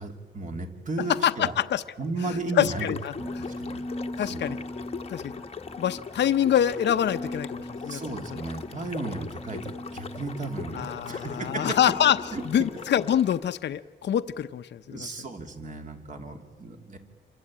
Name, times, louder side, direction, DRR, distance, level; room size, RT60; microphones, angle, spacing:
voice 1, 0.0-1.5 2.0-4.6 7.8-11.8 12.3-12.4 14.9-17.0, right 3 dB, 40° right, 4 dB, 3.0 m, -35 dB
voice 2, 1.2-1.8 2.5-3.5 4.2-4.6 5.1-5.3 5.8-8.0 10.7-12.2 12.4-15.1, left 10 dB, 65° left, 10 dB, 0.8 m, -25 dB
sound 1, 2.6-13.4, left 5 dB, 30° left, 1.1 m, -41 dB
sound 2, 3.2-13.0, left 1 dB, 5° left, 1.2 m, -40 dB
28.0 x 23.5 x 8.8 m, 1.3 s
wide cardioid pair, 155°, 20 cm